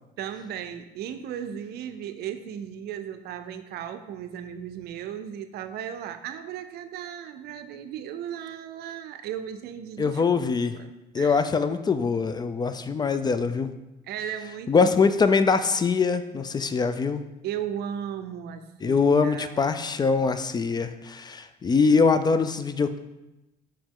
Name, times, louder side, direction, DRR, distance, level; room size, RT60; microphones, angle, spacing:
voice 1, 0.2-11.5 14.1-14.9 17.4-19.7, right 9 dB, 70° right, 10 dB, 0.5 m, -36 dB
voice 2, 10.0-10.7 11.1-13.7 14.7-17.2 18.8-23.0, left 5 dB, 25° left, 11 dB, 0.3 m, -23 dB
5.7 x 5.0 x 3.7 m, 0.97 s
cardioid pair, 110°, 17 cm